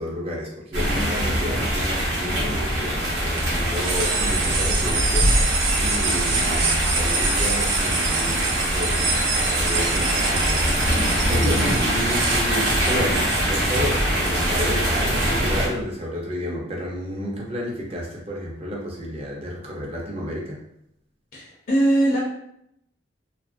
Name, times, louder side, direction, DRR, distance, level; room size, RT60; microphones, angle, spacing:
voice 1, 0.0-20.6, equal, 30° right, -2 dB, 0.5 m, -31 dB
sound 1, 0.7-15.7, equal, 65° right, 0.9 m, -23 dB
sound 2, 3.4-15.3, right 4 dB, 90° right, 0.4 m, -27 dB
voice 2, 21.3-22.2, right 1 dB, 45° left, -3 dB, 0.4 m, -20 dB
2.9 x 2.3 x 2.4 m, 0.75 s
head